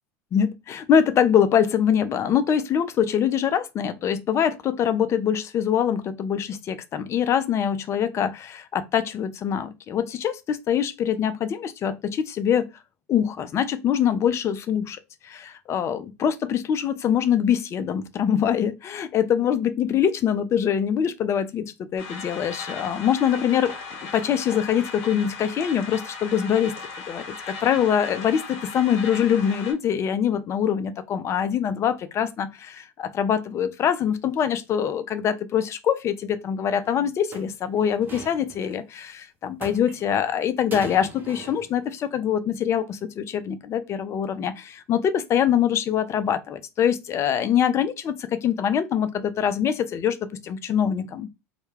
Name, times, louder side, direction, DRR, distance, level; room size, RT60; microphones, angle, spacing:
voice 1, 0.3-12.7 13.1-23.7 24.0-26.7 27.0-50.2 50.4-51.3, left 8 dB, 35° left, 0.4 m, -24 dB
sound 1, 22.0-29.7, left 4 dB, 65° left, 0.9 m, -37 dB
sound 2, 36.8-36.9 37.3-38.8 39.6-40.3 40.7-41.8 42.0-42.2, right 3 dB, 25° right, 0.7 m, -40 dB
2.2 x 2.2 x 3.1 m
hypercardioid pair, 85°, 8 cm